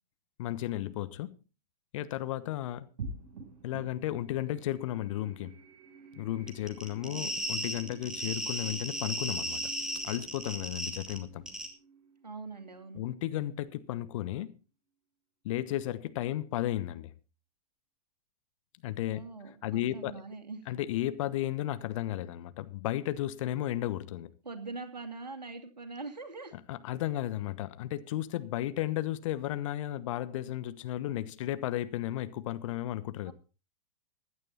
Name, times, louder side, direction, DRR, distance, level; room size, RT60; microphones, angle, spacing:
voice 1, 0.4-1.4 1.9-2.9 3.6-5.6 6.1-9.6 10.0-11.4 12.9-14.5 15.4-17.1 18.8-19.2 19.6-20.1 20.7-24.3 26.5-33.3, left 13 dB, 50° left, 1.2 m, -34 dB
sound 1, 3.0-13.6, right 3 dB, 60° right, 7.7 m, -49 dB
sound 2, 6.5-11.2 11.5-11.7, equal, 5° right, 2.6 m, -35 dB
voice 2, 7.0-7.5 12.2-13.0 19.1-20.6 24.4-26.5 33.2-33.3, right 3 dB, 80° right, 2.7 m, -43 dB
15.5 x 11.0 x 4.3 m
figure-of-eight pair, 100°, 21 cm